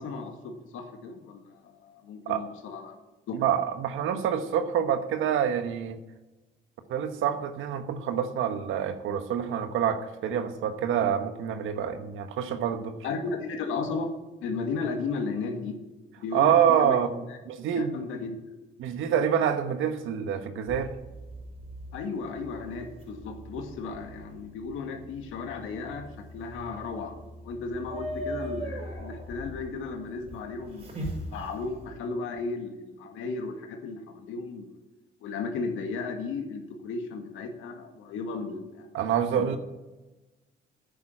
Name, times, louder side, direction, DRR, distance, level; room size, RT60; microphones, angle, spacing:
voice 1, 0.0-3.0 3.3-3.4 13.0-14.1 14.4-15.8 16.2-17.0 17.3-17.4 17.7-18.4 21.9-27.1 27.4-30.9 31.3-34.7 35.2-38.9 39.4-39.6, left 4 dB, 90° left, 4 dB, 2.0 m, -35 dB
voice 2, 3.3-6.0 6.9-13.0 16.3-17.1 17.4-18.0 18.8-20.9 38.9-39.6, right 8 dB, 85° right, 8 dB, 1.2 m, -26 dB
Owl Slow Hoot, 20.7-32.0, right 1 dB, 35° right, 5.3 m, -41 dB
9.9 x 9.1 x 7.7 m, 1.1 s
cardioid pair, 90°, 20 cm